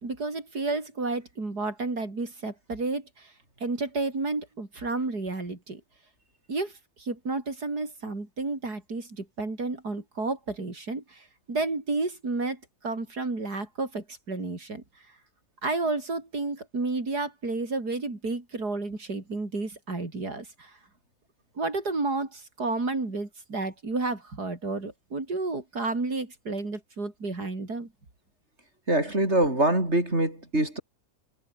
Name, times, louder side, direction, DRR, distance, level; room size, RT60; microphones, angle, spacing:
voice 1, 0.0-3.3 3.6-5.8 6.5-6.7 7.0-14.8 15.6-20.8 21.6-27.9, right 3 dB, 85° right, 5.2 m, -31 dB
voice 2, 28.9-30.8, right 1 dB, 45° right, 8.4 m, -24 dB
omnidirectional pair, 1.7 m